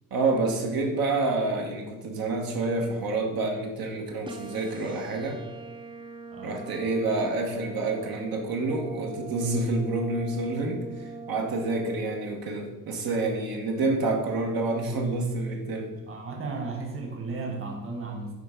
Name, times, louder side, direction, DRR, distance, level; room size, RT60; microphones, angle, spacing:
voice 1, 0.1-5.4 6.4-15.9, right 3 dB, 75° right, 1 dB, 1.3 m, -28 dB
sound 1, 4.3-12.3, right 4 dB, 15° right, 0.3 m, -42 dB
voice 2, 16.1-18.3, right 3 dB, 35° right, 1 dB, 1.4 m, -34 dB
10.0 x 3.5 x 5.1 m, 1.1 s
cardioid pair, 165°, 35 cm